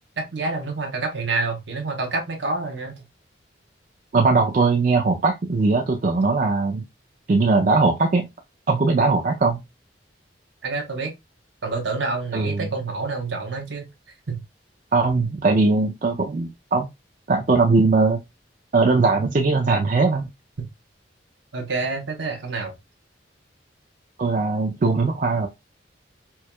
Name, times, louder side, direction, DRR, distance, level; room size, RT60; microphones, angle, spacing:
voice 1, 0.2-3.0 10.6-11.1 11.6-13.9 14.3-14.4 21.5-22.8, right 3 dB, 75° right, 1.0 m, -27 dB
voice 2, 4.1-6.8 7.3-8.3 8.7-9.6 12.3-12.7 14.9-16.9 17.3-18.2 18.7-20.2 24.2-25.5, right 3 dB, 45° right, 0.4 m, -20 dB
4.5 x 2.2 x 2.2 m
head